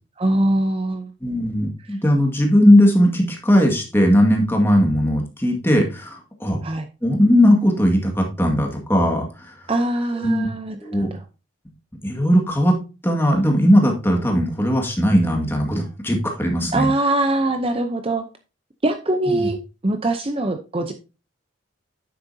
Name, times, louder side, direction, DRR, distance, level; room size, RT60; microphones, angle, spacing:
voice 1, 0.2-1.1 1.9-2.0 6.6-6.9 9.7-11.2 16.7-18.2 18.8-19.6 19.8-20.9, right 2 dB, 30° right, 6 dB, 0.6 m, -22 dB
voice 2, 1.2-6.6 7.0-9.6 10.2-10.5 10.8-11.1 12.0-12.8 13.0-16.9 19.3-19.5, equal, 10° left, 1 dB, 1.9 m, -18 dB
9.7 x 7.7 x 2.7 m, 0.30 s
head